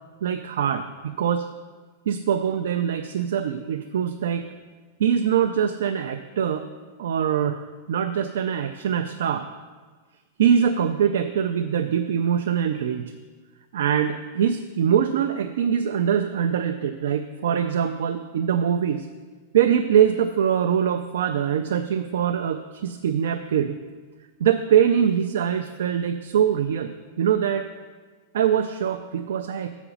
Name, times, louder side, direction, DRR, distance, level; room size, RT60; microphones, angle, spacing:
voice 1, 0.2-1.5 2.1-4.5 5.0-6.7 7.0-9.5 10.4-13.1 13.7-19.1 19.5-23.7 24.4-26.9 27.2-27.7 28.3-29.7, right 8 dB, 80° right, 7 dB, 0.4 m, -23 dB
7.0 x 5.0 x 7.0 m, 1.4 s
supercardioid pair, 165°, 0 cm